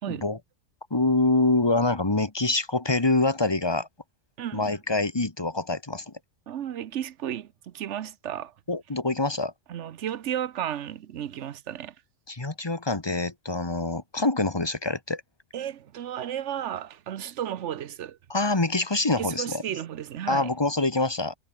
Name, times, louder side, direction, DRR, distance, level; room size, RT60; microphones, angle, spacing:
voice 1, 0.1-0.4 0.9-3.9 4.5-6.1 8.7-9.5 12.3-15.2 18.3-19.6 20.3-21.4, left 2 dB, 20° left, 1.6 m, -25 dB
voice 2, 4.4-4.7 6.5-8.5 9.7-11.9 15.5-18.2 19.2-20.5, right 10 dB, 65° right, 1.1 m, -33 dB
omnidirectional pair, 1.3 m